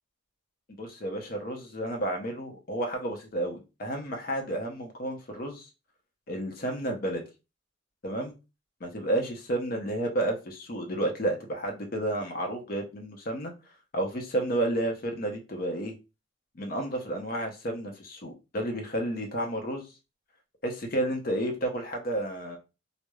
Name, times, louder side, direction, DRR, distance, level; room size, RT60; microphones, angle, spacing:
voice 1, 0.7-5.7 6.3-7.2 8.0-8.3 8.8-13.5 13.9-16.0 16.6-19.8 20.6-22.6, right 1 dB, 50° left, 3 dB, 0.6 m, -31 dB
3.0 x 2.0 x 2.2 m, 0.29 s
head